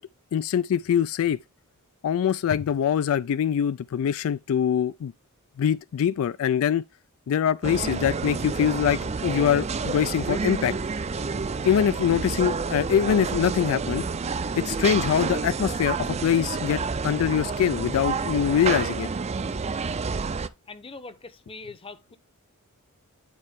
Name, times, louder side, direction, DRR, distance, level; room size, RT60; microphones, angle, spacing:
voice 1, 0.3-1.4 2.0-5.1 5.6-6.8 7.3-10.7 11.6-14.0 14.6-19.1, left 8 dB, 65° left, 0.3 m, -23 dB
sound 1, 7.6-20.5, right 4 dB, 30° right, 0.4 m, -29 dB
voice 2, 20.7-22.2, left 3 dB, 25° left, 0.8 m, -42 dB
9.3 x 4.2 x 3.6 m
head